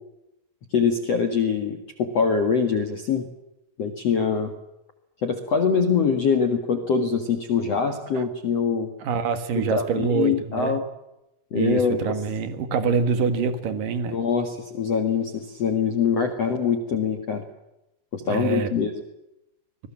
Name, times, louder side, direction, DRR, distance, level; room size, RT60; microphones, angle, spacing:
voice 1, 0.7-3.3 3.8-4.5 5.2-8.9 9.5-10.8 11.5-12.1 14.1-17.4 18.1-18.9, left 6 dB, 75° left, 6 dB, 1.4 m, -24 dB
voice 2, 7.9-8.2 9.0-10.8 11.5-14.2 18.3-18.7, right 6 dB, 60° right, 10 dB, 2.5 m, -25 dB
26.0 x 21.5 x 7.5 m, 0.89 s
omnidirectional pair, 5.9 m